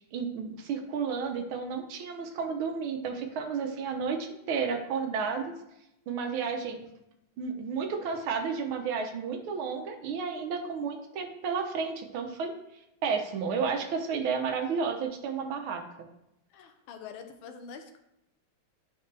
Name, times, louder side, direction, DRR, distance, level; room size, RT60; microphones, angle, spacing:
voice 1, 0.1-5.5 6.1-6.9 7.4-12.5 13.0-15.8, right 5 dB, 85° right, 5 dB, 1.7 m, -32 dB
voice 2, 16.5-18.0, left 6 dB, 85° left, 7 dB, 1.5 m, -45 dB
9.0 x 4.1 x 3.3 m, 0.85 s
omnidirectional pair, 2.2 m